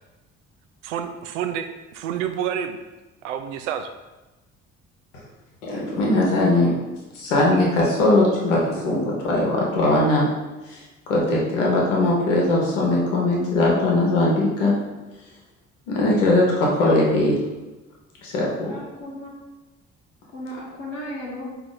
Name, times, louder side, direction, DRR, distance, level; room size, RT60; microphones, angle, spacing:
voice 1, 0.8-2.8 3.2-3.9 7.5-7.7, right 9 dB, 80° right, 7 dB, 0.5 m, -29 dB
voice 2, 5.6-6.7 7.1-10.3 10.6-14.7 15.2-15.3 15.9-17.4 18.2-18.7, left 2 dB, 80° left, -3 dB, 1.1 m, -20 dB
voice 3, 18.6-19.4 20.3-21.5, left 1 dB, 50° left, -7 dB, 1.2 m, -35 dB
4.9 x 2.8 x 3.9 m, 1.1 s
hypercardioid pair, 50°, 36 cm